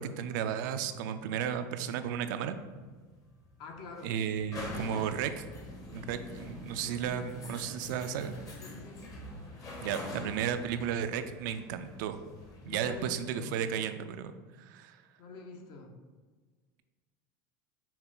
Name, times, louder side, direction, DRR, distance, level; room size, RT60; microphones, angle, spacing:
voice 1, 0.0-2.6 4.0-5.4 5.9-8.3 9.8-12.2 12.6-15.0, right 8 dB, 75° right, 9 dB, 0.4 m, -34 dB
sound 1, 2.6-13.2, left 2 dB, 35° left, 0.9 m, -45 dB
voice 2, 3.6-4.2 4.7-4.9 6.4-6.6 8.6-9.1 12.6-13.6 15.2-15.9, left 3 dB, 55° left, 3 dB, 0.8 m, -46 dB
5.8 x 2.2 x 3.8 m, 1.4 s
supercardioid pair, 110°, 10 cm